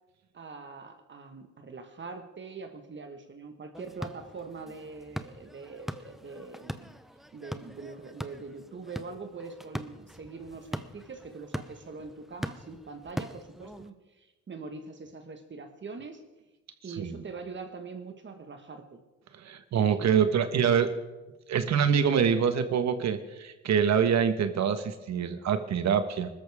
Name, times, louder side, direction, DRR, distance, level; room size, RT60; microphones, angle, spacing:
voice 1, 0.3-6.9 7.3-16.2 16.8-19.0, right 4 dB, 40° right, 6 dB, 1.6 m, -43 dB
sound 1, 3.7-13.9, equal, ahead, 0.8 m, -41 dB
voice 2, 19.4-20.9 21.5-26.3, right 7 dB, 60° right, 9 dB, 1.4 m, -25 dB
20.5 x 13.5 x 3.6 m, 1.1 s
cardioid pair, 90°, 30 cm